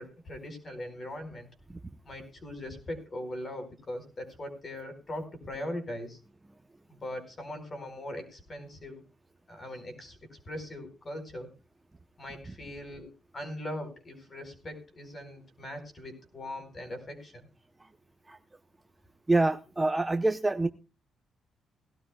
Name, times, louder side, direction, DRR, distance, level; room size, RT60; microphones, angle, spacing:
voice 1, 0.0-1.5 2.0-6.2 6.9-9.0 9.5-11.5 12.2-17.4, left 1 dB, 25° left, 7 dB, 4.5 m, -40 dB
voice 2, 19.3-20.7, right 2 dB, 10° right, 7 dB, 0.7 m, -26 dB
18.5 x 16.5 x 2.3 m, 0.33 s
cardioid pair, 160°, 0 cm